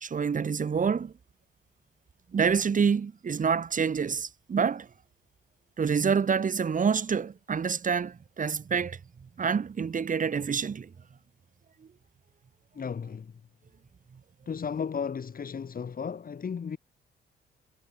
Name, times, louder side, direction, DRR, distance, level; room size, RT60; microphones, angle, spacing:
voice 1, 0.0-1.1 2.3-4.9 5.8-9.0 9.4-10.9, right 6 dB, 40° right, 2.1 m, -27 dB
voice 2, 12.7-13.3 14.5-16.8, left 6 dB, 45° left, 6.8 m, -34 dB
cardioid pair, 80°, 20 cm